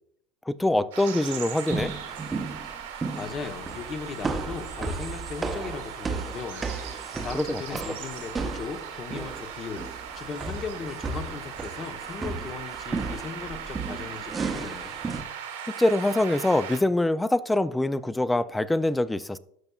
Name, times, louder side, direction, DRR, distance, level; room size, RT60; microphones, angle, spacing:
voice 1, 0.5-1.9 7.1-7.6 15.8-19.4, left 1 dB, 10° left, 0.4 m, -24 dB
sound 1, 0.9-16.8, right 8 dB, 85° right, 1.6 m, -39 dB
sound 2, 1.7-15.2, right 4 dB, 20° right, 0.8 m, -34 dB
voice 2, 3.1-6.7 7.2-9.9 10.1-14.9, left 5 dB, 40° left, 0.9 m, -37 dB
13.0 x 5.4 x 2.3 m
hypercardioid pair, 90°, 0 cm